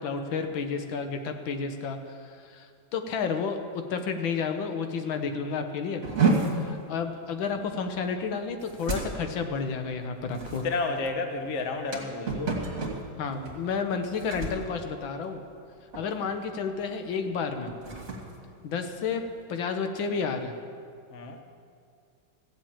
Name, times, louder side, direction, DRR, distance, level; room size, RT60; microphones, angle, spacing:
voice 1, 0.0-6.0 6.5-10.6 13.2-15.4 16.0-17.8 18.6-19.2 19.5-20.5, left 5 dB, 80° left, 6 dB, 1.7 m, -31 dB
sound 1, 6.0-15.7 15.9-16.3 16.7-16.9 17.5-19.4, right 3 dB, 45° right, 2.4 m, -32 dB
voice 2, 10.6-12.6 21.1-21.4, left 3 dB, 45° left, 6 dB, 1.1 m, -31 dB
15.0 x 7.6 x 8.7 m, 2.2 s
omnidirectional pair, 2.1 m